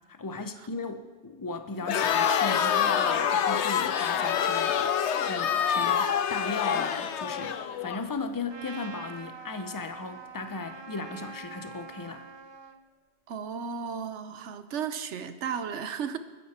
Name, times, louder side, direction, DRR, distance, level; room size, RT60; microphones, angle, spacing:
voice 1, 0.1-5.0 5.2-12.3, left 3 dB, 20° left, 9 dB, 0.7 m, -36 dB
Crowd, 1.8-8.0, left 8 dB, 80° left, 1.0 m, -26 dB
sound 1, 4.2-8.9, left 7 dB, 45° left, 1.2 m, -43 dB
Trumpet, 8.5-12.8, right 4 dB, 30° right, 0.6 m, -44 dB
voice 2, 13.3-16.2, right 7 dB, 85° right, 11 dB, 1.1 m, -34 dB
20.5 x 9.8 x 4.4 m, 1.3 s
omnidirectional pair, 1.2 m